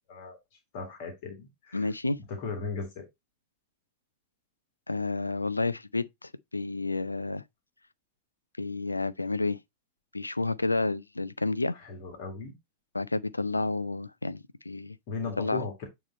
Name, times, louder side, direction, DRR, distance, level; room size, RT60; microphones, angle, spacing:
voice 1, 0.7-1.9 2.3-3.1 11.7-12.5 15.1-15.9, left 4 dB, 45° left, 1.9 m, -37 dB
voice 2, 1.7-2.2 4.9-7.4 8.6-9.6 10.1-11.7 12.9-15.0 15.4-15.6, left 3 dB, 80° left, 0.5 m, -30 dB
8.9 x 3.1 x 4.2 m
figure-of-eight pair, 90°, 0 cm